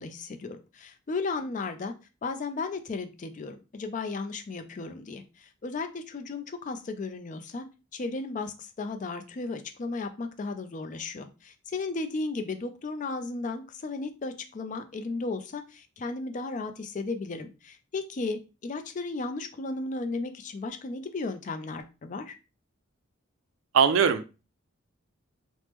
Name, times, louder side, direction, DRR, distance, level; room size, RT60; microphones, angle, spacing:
voice 1, 0.0-1.9 2.2-7.7 7.9-22.4, left 3 dB, 40° left, 8 dB, 0.4 m, -35 dB
voice 2, 23.7-24.2, right 6 dB, 75° right, 10 dB, 0.4 m, -20 dB
3.0 x 2.0 x 3.3 m, 0.31 s
head